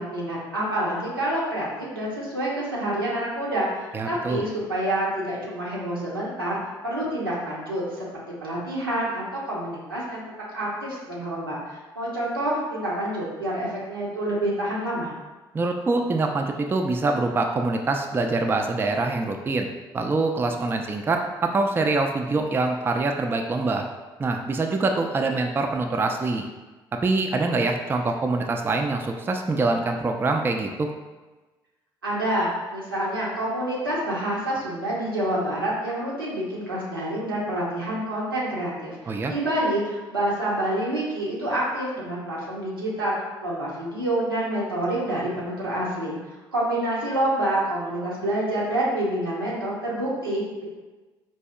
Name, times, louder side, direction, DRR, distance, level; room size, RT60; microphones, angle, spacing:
voice 1, 0.0-6.6 6.8-10.2 10.5-15.1 32.0-43.1 43.4-46.2 46.5-50.6, right 1 dB, 90° right, -6 dB, 0.7 m, -27 dB
voice 2, 3.9-4.4 15.5-19.7 19.9-23.9 24.2-26.5 27.0-30.9 39.1-39.3, right 3 dB, 20° right, 3 dB, 0.3 m, -24 dB
4.2 x 2.7 x 2.3 m, 1.2 s
figure-of-eight pair, 50°, 12 cm